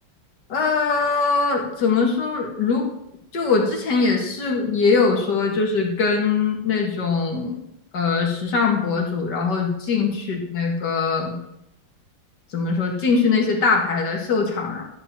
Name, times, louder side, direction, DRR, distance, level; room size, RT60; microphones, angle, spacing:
voice 1, 0.5-2.9 3.3-7.6 7.9-11.4 12.5-14.8, left 4 dB, 55° left, 0 dB, 2.3 m, -22 dB
12.0 x 4.9 x 6.9 m, 0.79 s
omnidirectional pair, 2.4 m